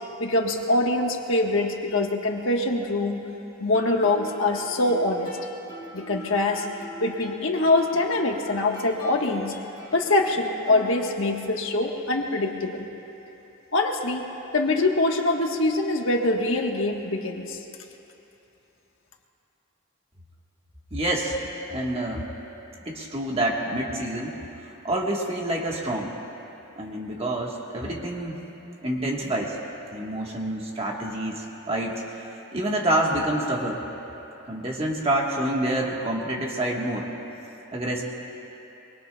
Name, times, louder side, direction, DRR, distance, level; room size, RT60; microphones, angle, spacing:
voice 1, 0.2-3.3 3.6-5.3 5.9-6.7 7.0-9.5 9.9-12.9 13.7-14.3 14.5-17.6, left 2 dB, 65° left, 1 dB, 1.3 m, -24 dB
Guitar, 3.7-11.4, right 1 dB, 20° left, 3.1 m, -42 dB
voice 2, 20.9-21.4 21.7-22.3 22.8-24.4 24.8-26.1 26.8-28.4 28.8-29.6 29.9-32.0 32.5-33.8 34.5-37.1 37.7-38.0, right 1 dB, 25° right, -2 dB, 1.4 m, -27 dB
24.0 x 23.5 x 2.3 m, 3.0 s
head